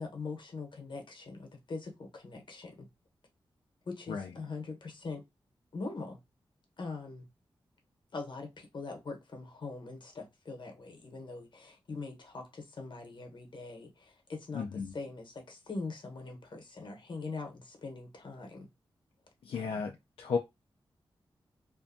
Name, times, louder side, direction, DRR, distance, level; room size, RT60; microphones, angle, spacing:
voice 1, 0.0-2.9 3.9-5.2 5.7-6.2 6.8-7.2 8.1-14.6 14.9-18.7 19.6-19.8, left 3 dB, 60° left, 0.9 m, -42 dB
voice 2, 14.5-14.9 19.4-20.4, left 5 dB, 80° left, 0.4 m, -34 dB
2.6 x 2.2 x 2.5 m
wide cardioid pair, 90°, 9 cm